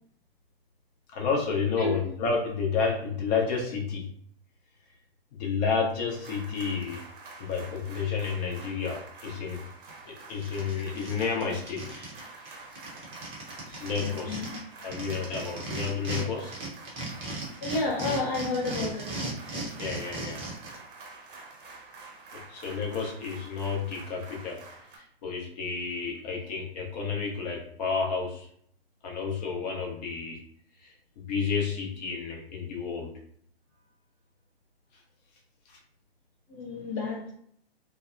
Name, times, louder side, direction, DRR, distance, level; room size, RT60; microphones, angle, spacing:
voice 1, 1.1-4.1 5.3-7.0 7.4-9.6 10.0-12.8 13.6-14.4 14.8-16.6 18.1-18.2 19.8-20.4 22.5-24.6 24.9-28.5 29.0-30.4 30.8-33.1 35.7-35.8, left 5 dB, 45° left, 0 dB, 0.8 m, -31 dB
sound 1, 6.1-25.0, right 3 dB, 60° right, 0.8 m, -48 dB
sound 2, 9.9-10.0 10.3-12.2 12.4-12.5 12.7-16.2 16.5-20.7, right 2 dB, 20° right, 0.6 m, -36 dB
voice 2, 14.0-15.5 17.6-19.2 36.5-37.3, left 3 dB, 25° left, -5 dB, 0.4 m, -32 dB
2.7 x 2.1 x 2.5 m, 0.64 s
figure-of-eight pair, 120°, 31 cm